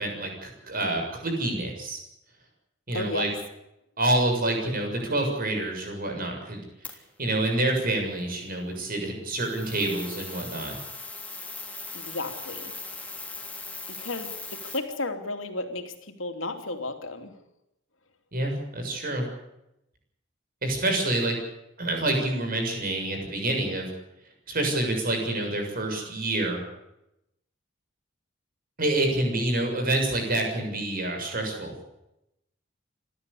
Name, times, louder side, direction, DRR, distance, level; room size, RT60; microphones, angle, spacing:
voice 1, 0.0-2.0 2.9-3.3 4.0-6.6 7.2-10.8 18.3-19.2 20.6-21.4 21.8-23.9 24.5-26.6 28.8-31.7, right 2 dB, 50° right, 2 dB, 7.1 m, -27 dB
voice 2, 2.9-3.3 11.9-12.7 13.9-17.4 21.0-21.1, left 2 dB, 75° left, 6 dB, 2.9 m, -34 dB
sound 1, 6.8-7.0 9.4-14.8, left 3 dB, 5° left, 3.3 m, -39 dB
28.5 x 12.5 x 8.4 m, 0.85 s
head